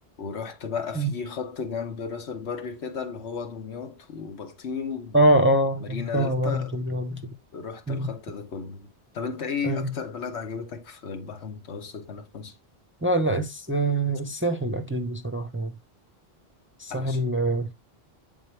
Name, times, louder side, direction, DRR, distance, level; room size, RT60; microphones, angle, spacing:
voice 1, 0.2-5.5 5.8-6.8 7.5-12.6 16.9-17.3, left 5 dB, 85° left, 1.3 m, -34 dB
voice 2, 5.1-7.3 7.9-8.1 9.6-9.9 13.0-15.7 16.8-17.7, right 1 dB, 15° right, 0.5 m, -24 dB
8.2 x 3.8 x 3.2 m
omnidirectional pair, 1.1 m